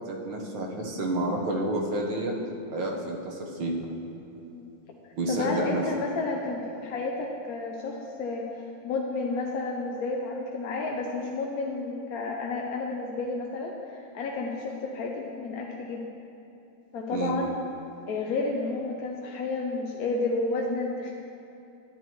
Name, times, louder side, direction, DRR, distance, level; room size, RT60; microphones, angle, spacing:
voice 1, 0.0-2.4 2.7-3.8 5.2-5.8 17.1-17.4, right 2 dB, 80° right, -1 dB, 1.9 m, -29 dB
voice 2, 5.3-16.1 16.9-17.5 18.1-21.1, left 3 dB, 60° left, 0 dB, 1.1 m, -31 dB
12.5 x 10.5 x 3.1 m, 2.9 s
omnidirectional pair, 2.0 m